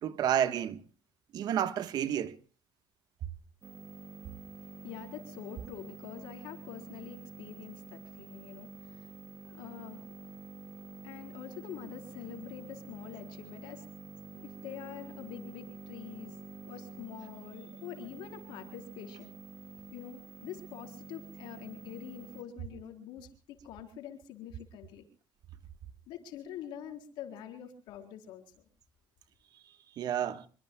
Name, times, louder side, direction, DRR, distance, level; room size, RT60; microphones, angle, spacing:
voice 1, 0.0-0.8 1.3-2.4 30.0-30.5, right 10 dB, 60° right, 1.3 m, -30 dB
sound 1, 3.6-22.4, right 3 dB, 35° right, 1.9 m, -48 dB
voice 2, 4.5-14.0 14.4-19.3 19.9-25.0 26.1-28.6, left 9 dB, 90° left, 4.2 m, -46 dB
26.0 x 23.5 x 2.3 m
cardioid pair, 135°, 8 cm